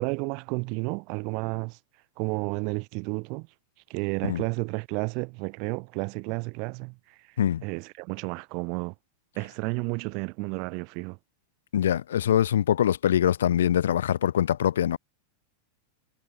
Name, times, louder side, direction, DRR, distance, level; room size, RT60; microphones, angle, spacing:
voice 1, 0.0-1.8 2.2-3.5 3.9-7.2 7.6-8.9 9.4-11.2, right 33 dB, 45° right, 5.9 m, -31 dB
voice 2, 11.7-15.0, left 10 dB, 65° left, 0.5 m, -23 dB
figure-of-eight pair, 90°, 0 cm